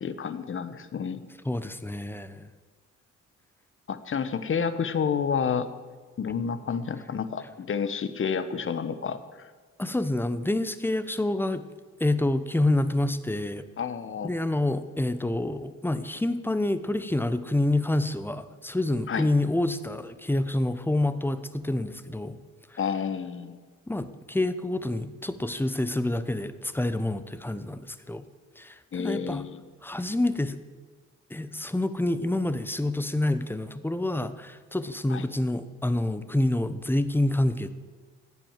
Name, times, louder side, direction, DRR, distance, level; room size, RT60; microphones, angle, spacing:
voice 1, 0.0-1.2 3.9-5.7 6.2-9.5 13.8-14.3 19.1-19.3 22.8-23.6 28.9-29.6 35.1-35.2, left 6 dB, 45° left, 12 dB, 1.2 m, -30 dB
voice 2, 1.4-2.5 9.8-11.6 12.0-13.6 14.2-22.4 22.7-22.8 23.9-28.3 28.6-29.4 29.8-30.6 31.3-37.7, left 1 dB, 5° left, 12 dB, 0.9 m, -27 dB
15.5 x 9.0 x 7.4 m, 1.5 s
cardioid pair, 90°, 30 cm